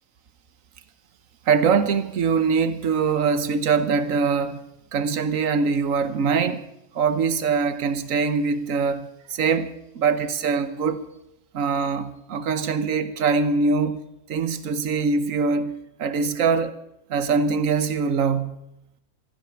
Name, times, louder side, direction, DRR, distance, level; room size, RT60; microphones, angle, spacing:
voice 1, 1.5-4.6 4.9-6.6 6.9-11.0 11.5-14.0 14.3-16.8 17.1-18.6, right 5 dB, 60° right, 1.4 m, -23 dB
14.5 x 10.5 x 8.6 m
omnidirectional pair, 1.6 m